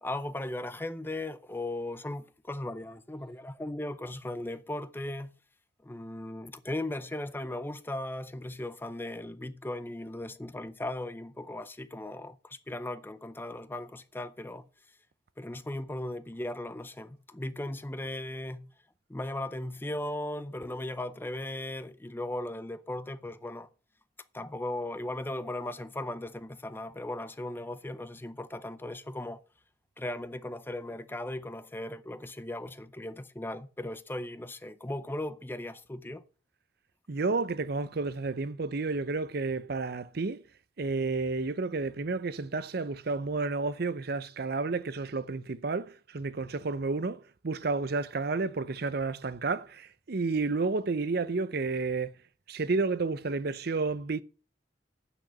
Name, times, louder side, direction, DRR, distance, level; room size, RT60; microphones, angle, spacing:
voice 1, 0.0-5.3 5.8-14.7 15.4-18.7 19.1-23.7 24.3-29.4 30.0-36.2, left 1 dB, 10° left, 0.5 m, -37 dB
voice 2, 37.1-40.4 40.8-52.1 52.5-54.2, right 3 dB, 55° right, 0.6 m, -31 dB
9.1 x 6.3 x 6.3 m
head